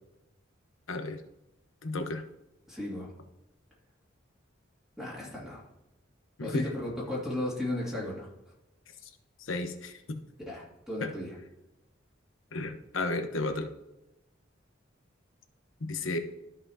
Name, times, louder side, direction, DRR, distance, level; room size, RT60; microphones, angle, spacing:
voice 1, 0.9-1.2 1.8-2.2 6.4-6.7 9.0-9.1 9.4-10.2 11.0-11.1 12.5-13.7 15.8-16.2, left 2 dB, 80° left, 7 dB, 1.0 m, -33 dB
voice 2, 2.7-3.1 5.0-5.6 6.4-8.3 10.5-11.3, left 1 dB, ahead, -6 dB, 2.2 m, -35 dB
13.0 x 5.7 x 2.7 m, 0.95 s
head